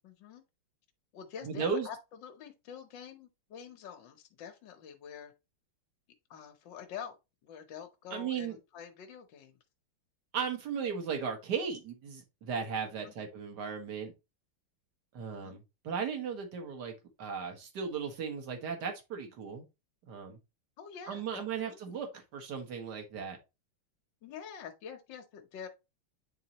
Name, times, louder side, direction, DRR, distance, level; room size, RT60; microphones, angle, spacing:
voice 1, 0.0-0.4 1.1-5.3 6.3-7.1 7.4-9.6 13.0-13.1 15.3-15.6 20.8-22.0 24.2-25.7, left 7 dB, 65° left, 1.5 m, -47 dB
voice 2, 1.4-1.9 8.1-8.6 10.3-14.1 15.1-19.7 20.0-20.4 21.1-23.4, right 6 dB, 50° right, 2.0 m, -36 dB
9.2 x 3.9 x 2.9 m
omnidirectional pair, 2.4 m